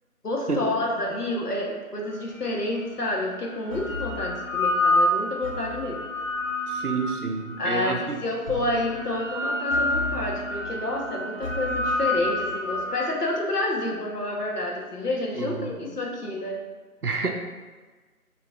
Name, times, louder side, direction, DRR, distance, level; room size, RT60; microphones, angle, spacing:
voice 1, 0.2-6.0 7.6-16.6, left 1 dB, 80° left, -1 dB, 1.0 m, -29 dB
sound 1, 2.4-2.5 3.4-7.7 8.5-13.1, left 1 dB, 60° left, 0.7 m, -28 dB
voice 2, 6.7-8.3 15.3-15.7 17.0-17.3, right 3 dB, 75° right, 3 dB, 0.7 m, -29 dB
6.0 x 3.0 x 2.3 m, 1.3 s
figure-of-eight pair, 175°, 45 cm